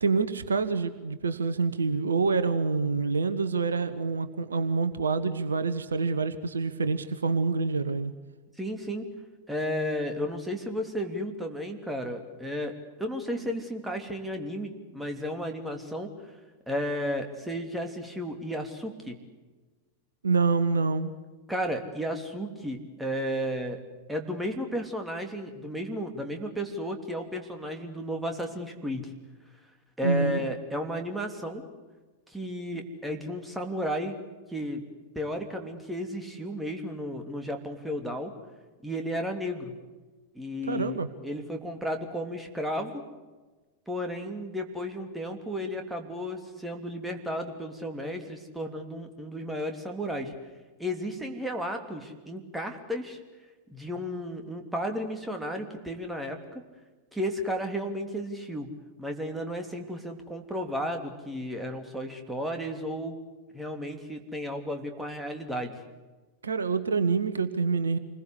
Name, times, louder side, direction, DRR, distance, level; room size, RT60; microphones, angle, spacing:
voice 1, 0.0-8.1 20.2-21.1 30.0-30.5 40.7-41.1 66.4-68.0, right 4 dB, 70° right, 12 dB, 1.2 m, -27 dB
voice 2, 8.6-9.1 9.5-16.1 16.7-19.2 21.5-23.8 24.1-29.1 30.0-31.7 32.3-34.2 34.5-34.9 35.1-38.3 38.8-39.7 40.3-43.0 43.9-50.3 50.8-53.2 53.7-56.6 57.1-63.2 63.5-65.8, equal, 5° right, 4 dB, 3.1 m, -33 dB
27.5 x 21.0 x 8.3 m, 1.3 s
figure-of-eight pair, 90°, 0 cm